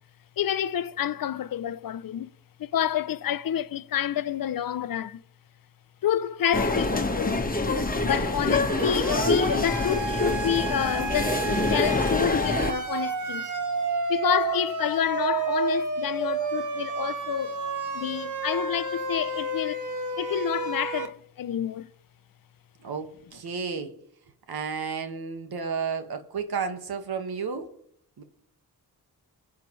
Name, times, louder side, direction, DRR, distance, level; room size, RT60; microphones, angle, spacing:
voice 1, 0.4-2.3 2.6-5.2 6.0-7.4 8.0-13.5 14.1-19.8 20.2-21.9, left 9 dB, 65° left, 0.7 m, -28 dB
sound 1, 6.5-12.7, left 2 dB, 20° left, 1.6 m, -26 dB
voice 2, 8.1-8.8 22.8-24.0 24.5-27.7 28.2-28.3, right 5 dB, 75° right, 1.8 m, -32 dB
Siren, 8.7-21.1, right 3 dB, 50° right, 1.9 m, -30 dB
21.0 x 8.2 x 3.2 m
cardioid pair, 55°, 38 cm